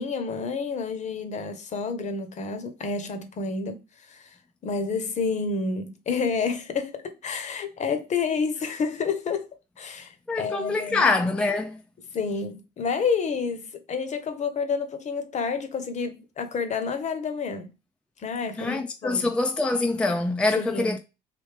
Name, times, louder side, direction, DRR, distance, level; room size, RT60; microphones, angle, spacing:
voice 1, 0.0-3.8 4.1-4.3 4.6-9.5 9.8-11.1 12.1-17.7 18.2-19.3 20.5-21.0, left 5 dB, 45° left, 0.8 m, -29 dB
voice 2, 10.3-11.8 18.6-21.0, left 3 dB, 5° left, 0.4 m, -25 dB
3.3 x 2.7 x 3.1 m
cardioid pair, 110°, 17 cm